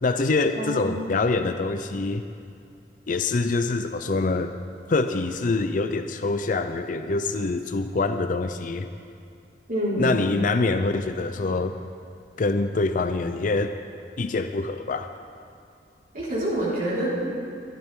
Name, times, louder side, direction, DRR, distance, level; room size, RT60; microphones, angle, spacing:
voice 1, 0.0-2.2 3.1-4.5 4.9-8.9 10.0-11.8 12.4-13.7 14.2-15.1, left 3 dB, 50° left, 8 dB, 0.5 m, -25 dB
voice 2, 0.5-1.2 9.7-10.3 16.1-17.1, right 1 dB, 55° right, -8 dB, 4.8 m, -27 dB
23.5 x 12.5 x 3.7 m, 2.4 s
head